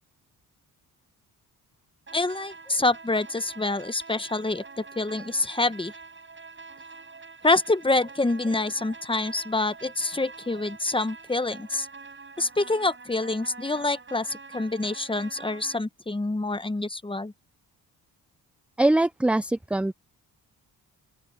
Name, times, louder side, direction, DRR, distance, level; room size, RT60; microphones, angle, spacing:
voice 1, 2.1-4.6 5.0-5.9 7.4-11.9 12.4-17.3, left 2 dB, 15° left, 1.2 m, -26 dB
sound 1, 2.1-15.8, right 4 dB, 30° right, 5.6 m, -45 dB
voice 2, 18.8-19.9, right 2 dB, 5° right, 0.4 m, -22 dB
open air
cardioid pair, 75°, 38 cm